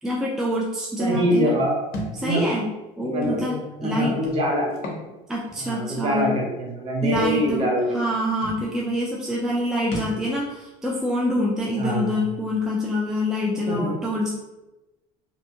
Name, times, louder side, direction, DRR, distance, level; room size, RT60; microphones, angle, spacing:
voice 1, 0.0-1.6 2.2-2.7 3.0-4.2 5.3-6.3 7.0-7.6 7.9-14.3, equal, 5° right, -4 dB, 0.4 m, -26 dB
voice 2, 1.0-1.8 2.1-2.4 3.0-4.8 5.6-8.0 11.8-12.2 13.7-13.9, equal, 35° right, -1 dB, 0.8 m, -24 dB
Thump thud, 1.9-2.2 3.2-3.4 4.7-5.1 5.5-5.6 7.1-7.3 8.1-8.2 8.4-8.6 9.9-10.2, left 1 dB, 65° left, 0.8 m, -32 dB
2.6 x 2.2 x 2.7 m, 1.0 s
supercardioid pair, 105°, 17 cm